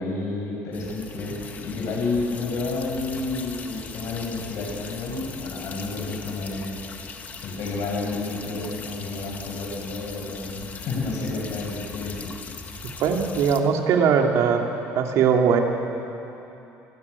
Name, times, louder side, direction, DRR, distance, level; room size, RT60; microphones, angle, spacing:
voice 1, 0.0-6.8 7.1-12.3, left 3 dB, 60° left, -1 dB, 6.0 m, -30 dB
sound 1, 0.7-13.6, left 5 dB, 30° left, 1.5 m, -40 dB
voice 2, 13.0-14.6 15.0-15.6, right 6 dB, 60° right, 2 dB, 2.4 m, -20 dB
28.5 x 15.0 x 9.6 m, 3.0 s
cardioid pair, 170°, 6 cm